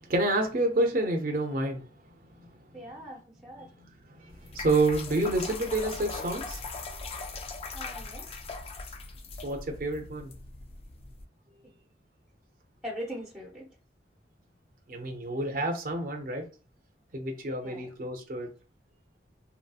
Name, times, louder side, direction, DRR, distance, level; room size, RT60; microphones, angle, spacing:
voice 1, 0.1-1.9 2.4-2.5 3.8-6.6 9.4-10.3 14.9-16.4 17.1-18.5, right 2 dB, 50° right, 0.5 m, -29 dB
voice 2, 2.7-3.7 5.3-5.4 7.7-8.4 12.8-13.7 17.6-17.9, equal, 5° right, 0.6 m, -41 dB
sound 1, 4.3-11.2, left 3 dB, 35° left, 0.3 m, -40 dB
2.7 x 2.7 x 2.3 m
head